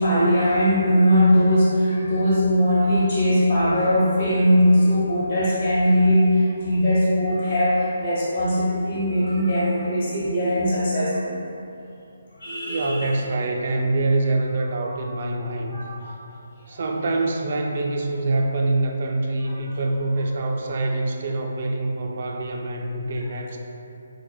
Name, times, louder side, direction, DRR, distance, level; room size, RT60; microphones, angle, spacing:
voice 1, 0.0-11.4 12.4-13.0 15.7-16.1 16.7-16.8 20.1-20.2, equal, 50° left, -8 dB, 1.0 m, -20 dB
voice 2, 12.7-15.8 16.7-23.6, right 2 dB, 50° right, 2 dB, 0.3 m, -25 dB
4.2 x 2.0 x 2.2 m, 2.6 s
figure-of-eight pair, 145°, 0 cm